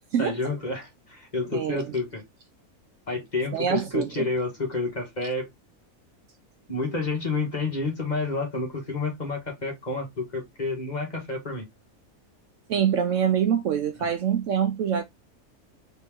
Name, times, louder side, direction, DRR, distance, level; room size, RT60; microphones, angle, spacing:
voice 1, 0.2-2.2 3.1-5.5 6.7-11.7 14.0-14.1, left 3 dB, 30° left, 1.7 m, -29 dB
voice 2, 1.5-1.9 3.5-4.3 12.7-15.0, right 8 dB, 65° right, 0.9 m, -25 dB
4.4 x 3.0 x 3.5 m
omnidirectional pair, 1.6 m